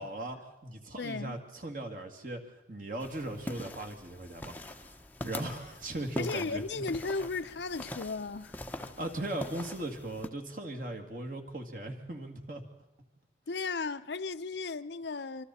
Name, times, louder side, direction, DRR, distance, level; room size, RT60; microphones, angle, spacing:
voice 1, 0.0-2.4 2.7-5.0 5.2-6.8 9.0-12.6, right 1 dB, 50° right, 2.4 m, -38 dB
voice 2, 1.0-1.4 6.2-9.0 13.5-15.4, left 4 dB, 70° left, 0.7 m, -35 dB
sound 1, 3.0-10.3, left 1 dB, 10° left, 0.8 m, -43 dB
25.5 x 25.0 x 4.3 m
head